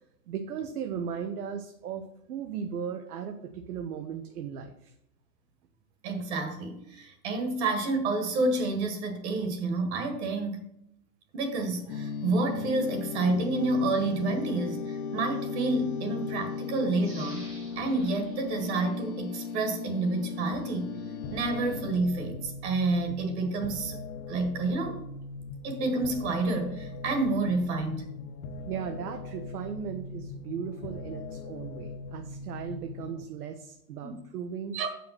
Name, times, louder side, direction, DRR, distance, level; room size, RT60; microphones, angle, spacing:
voice 1, 0.3-4.9 28.7-34.7, right 7 dB, 65° right, 6 dB, 1.0 m, -37 dB
voice 2, 6.0-10.7 11.3-17.5 17.8-20.9 21.3-24.0 24.3-25.0 25.6-28.1 34.0-34.2 34.7-34.9, right 2 dB, 40° right, 4 dB, 1.9 m, -29 dB
sound 1, 11.9-22.0, left 5 dB, 40° left, 0.8 m, -36 dB
sound 2, 17.0-19.7 20.2-20.3, right 1 dB, 5° right, 0.5 m, -51 dB
sound 3, 21.2-33.2, left 3 dB, 60° left, 1.1 m, -41 dB
7.5 x 5.7 x 5.8 m, 0.81 s
hypercardioid pair, 160°, 49 cm